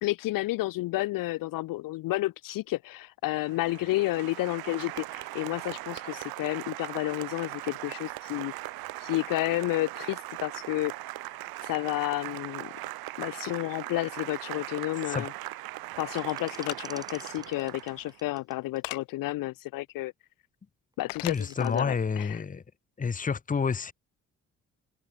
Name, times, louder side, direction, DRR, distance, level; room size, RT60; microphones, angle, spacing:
voice 1, 0.0-8.5 9.0-10.9 11.6-12.7 13.2-15.3 16.0-20.1 21.0-22.4, left 18 dB, 60° left, 0.7 m, -31 dB
Applause, 3.4-18.2, right 17 dB, 70° right, 3.9 m, -39 dB
sound 1, 16.1-18.9 20.9-21.8, right 1 dB, 10° right, 4.4 m, -49 dB
sound 2, 16.6-16.8 18.8-19.0 21.1-21.4, left 29 dB, 80° left, 1.8 m, -36 dB
voice 2, 21.2-22.6 23.0-23.9, left 5 dB, 20° left, 0.8 m, -29 dB
hypercardioid pair, 45°, 38 cm